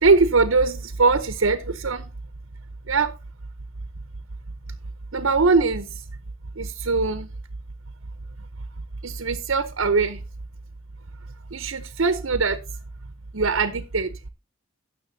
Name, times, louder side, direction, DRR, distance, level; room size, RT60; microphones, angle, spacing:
voice 1, 0.0-2.1 2.9-3.1 5.1-6.0 6.6-7.3 9.0-10.2 11.5-12.6 13.3-14.1, right 4 dB, 65° right, 0.8 m, -21 dB
16.5 x 6.6 x 2.7 m
head